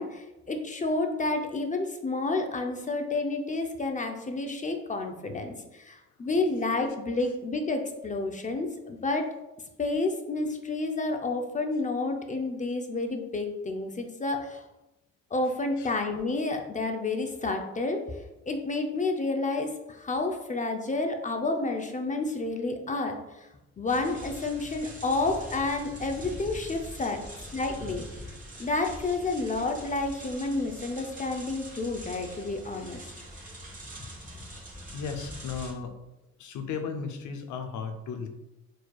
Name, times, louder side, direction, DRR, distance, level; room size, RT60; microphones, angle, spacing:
voice 1, 0.0-5.5 5.8-9.3 9.8-14.6 15.3-18.0 18.5-23.5 23.8-27.2 27.5-28.0 28.6-33.1 34.0-34.1, left 3 dB, 25° left, 4 dB, 0.6 m, -30 dB
sound 1, 23.9-35.7, equal, 25° right, 1.2 m, -43 dB
voice 2, 34.9-36.0 36.4-38.3, left 5 dB, 75° left, 6 dB, 0.7 m, -36 dB
4.6 x 4.4 x 2.3 m, 0.96 s
cardioid pair, 90°, 30 cm